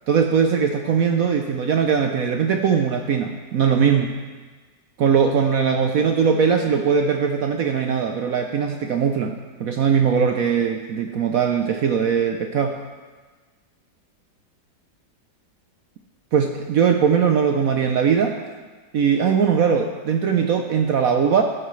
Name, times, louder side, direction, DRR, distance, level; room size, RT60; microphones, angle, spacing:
voice 1, 0.1-4.2 5.0-12.8 16.3-18.4 18.9-21.4, right 7 dB, 65° right, 4 dB, 0.9 m, -20 dB
14.0 x 11.0 x 3.2 m, 1.4 s
omnidirectional pair, 2.0 m